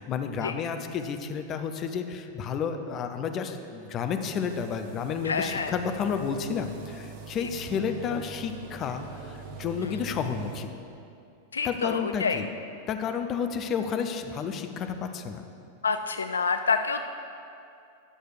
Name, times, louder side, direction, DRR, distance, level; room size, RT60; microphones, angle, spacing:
voice 1, 0.0-10.7 11.6-12.5 12.9-15.4, left 6 dB, 30° left, 6 dB, 0.7 m, -31 dB
sound 1, 4.2-10.7, right 5 dB, 45° right, 0.9 m, -43 dB
voice 2, 5.2-5.7 7.4-7.5 9.8-9.9 11.5-12.4 15.8-17.0, left 5 dB, 70° left, 8 dB, 0.3 m, -28 dB
11.0 x 6.4 x 4.8 m, 2.6 s
figure-of-eight pair, 90°, 0 cm